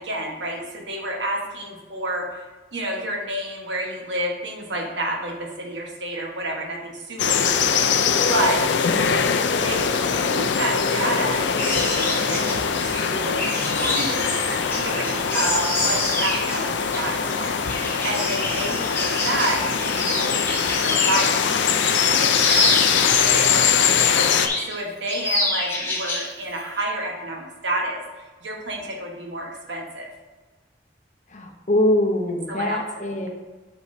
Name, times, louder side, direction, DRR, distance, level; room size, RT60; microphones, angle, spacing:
voice 1, 0.0-8.6 9.6-12.5 12.8-13.4 13.8-20.4 20.7-22.7 23.2-23.8 24.1-30.1 32.5-33.3, right 1 dB, 80° right, 0 dB, 1.3 m, -30 dB
sound 1, 7.2-24.5, left 6 dB, 80° left, 0.5 m, -22 dB
sound 2, 11.6-21.4 21.7-23.6 24.0-24.8 25.1-26.3 26.6-26.8, left 2 dB, 15° left, 1.2 m, -27 dB
voice 2, 31.3-33.3, left 1 dB, 40° left, 3 dB, 0.8 m, -23 dB
8.2 x 6.2 x 2.7 m, 1.2 s
head